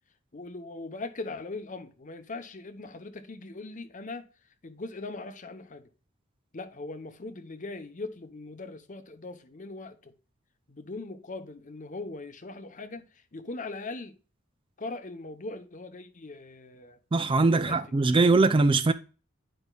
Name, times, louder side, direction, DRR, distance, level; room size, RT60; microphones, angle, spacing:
voice 1, 0.3-4.3 4.6-5.9 6.5-10.1 10.7-14.2 14.8-17.0 17.5-18.0, left 3 dB, 40° left, 0.8 m, -40 dB
voice 2, 17.1-18.9, right 3 dB, 25° right, 0.3 m, -21 dB
10.0 x 5.1 x 2.3 m
head